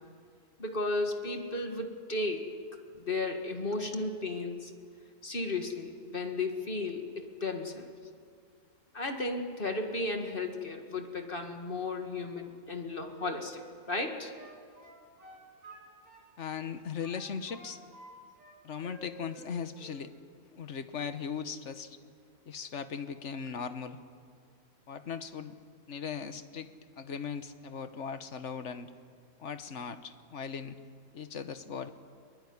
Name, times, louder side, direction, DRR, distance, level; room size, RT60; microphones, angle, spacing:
voice 1, 0.6-2.4 3.0-4.7 5.2-7.9 8.9-14.3, left 2 dB, 40° left, 4 dB, 2.0 m, -34 dB
Wind instrument woodwind instrument, 13.1-16.3 16.5-18.1 18.4-19.5 19.7-20.0, right 1 dB, 80° right, 6.8 m, -51 dB
voice 2, 16.4-17.8 18.6-20.1 20.5-22.0 22.5-24.0 24.9-25.6 25.9-28.9 29.4-30.8 31.1-31.9, left 6 dB, 55° left, 10 dB, 1.4 m, -38 dB
22.5 x 20.0 x 9.7 m, 2.1 s
omnidirectional pair, 1.5 m